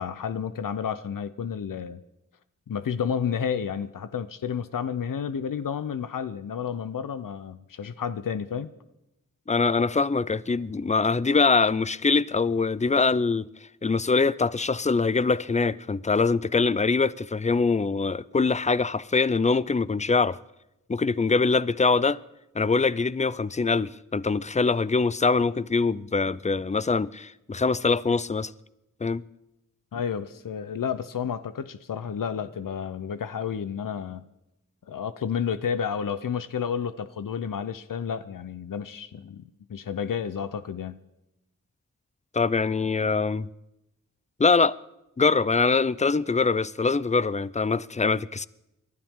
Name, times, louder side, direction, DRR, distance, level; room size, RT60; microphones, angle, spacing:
voice 1, 0.0-2.0 2.7-8.7 29.9-34.3 34.9-41.0, left 7 dB, 90° left, 0.7 m, -31 dB
voice 2, 9.5-13.5 13.8-20.4 20.9-22.2 22.6-28.5 29.0-29.2 42.3-43.5 44.4-44.8 45.2-48.5, left 4 dB, 20° left, 0.4 m, -23 dB
29.5 x 12.0 x 3.7 m
wide cardioid pair, 60°, 32 cm